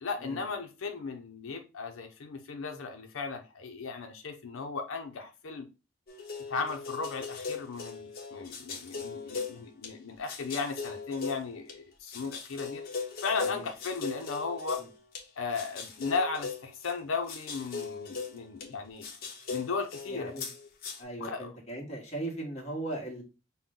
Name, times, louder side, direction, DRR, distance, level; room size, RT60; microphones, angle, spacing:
voice 1, 0.0-5.7 6.5-12.8 13.2-14.8 15.4-19.0 19.5-20.3 21.2-21.5, left 4 dB, 85° left, 0.6 m, -36 dB
sound 1, 6.1-9.9 10.3-11.8 12.1-15.2 15.5-18.7 19.0-21.0, left 5 dB, 50° left, 1.0 m, -39 dB
voice 2, 20.1-20.5 21.0-23.2, right 2 dB, 35° left, 1.3 m, -38 dB
5.5 x 2.1 x 3.5 m
head